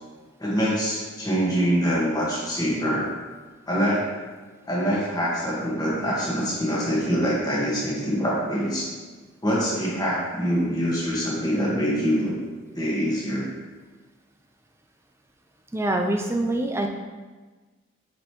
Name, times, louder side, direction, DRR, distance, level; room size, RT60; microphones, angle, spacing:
voice 1, 0.4-3.1 3.7-4.1 4.7-8.9 9.4-12.4 12.7-13.5, equal, 20° left, -5 dB, 1.5 m, -24 dB
voice 2, 15.7-16.9, right 1 dB, 10° right, 3 dB, 0.5 m, -24 dB
7.7 x 5.3 x 3.0 m, 1.3 s
head